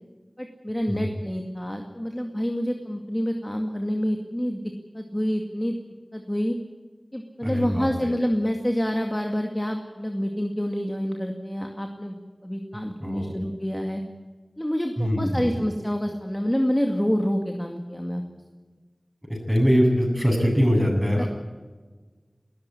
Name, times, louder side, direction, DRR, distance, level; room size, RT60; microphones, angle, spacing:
voice 1, 0.4-5.8 6.1-6.6 7.1-12.2 12.4-14.0 14.6-18.2 21.2-21.3, equal, 10° left, 3 dB, 2.2 m, -27 dB
voice 2, 7.4-7.9 13.0-13.3 15.0-15.5 19.3-21.3, equal, 5° right, 1 dB, 7.7 m, -22 dB
20.0 x 14.0 x 9.9 m, 1.3 s
wide cardioid pair, 50°, 0 cm